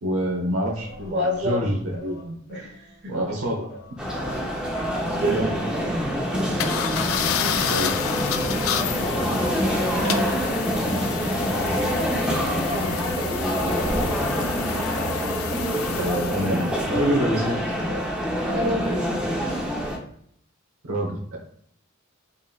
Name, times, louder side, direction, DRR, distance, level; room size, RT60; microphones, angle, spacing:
voice 1, 0.0-2.4 3.1-3.7 5.3-5.5 6.1-6.2 7.7-8.0 16.0-17.6 20.8-21.4, equal, 85° right, -1 dB, 0.9 m, -26 dB
Singing, 0.7-5.1 5.5-15.8 16.1-17.1, right 2 dB, 50° left, 0.6 m, -42 dB
voice 2, 1.1-1.7 2.5-3.2 4.3-4.4 4.7-6.0 9.0-9.3 9.7-10.4 12.7-13.1 13.6-13.8 18.3-19.0, equal, 55° right, 0 dB, 1.1 m, -30 dB
sound 1, 4.0-20.0, equal, 5° right, 0.7 m, -26 dB
sound 2, 6.6-16.7, left 8 dB, 90° left, 0.4 m, -29 dB
4.1 x 3.7 x 2.3 m, 0.68 s
head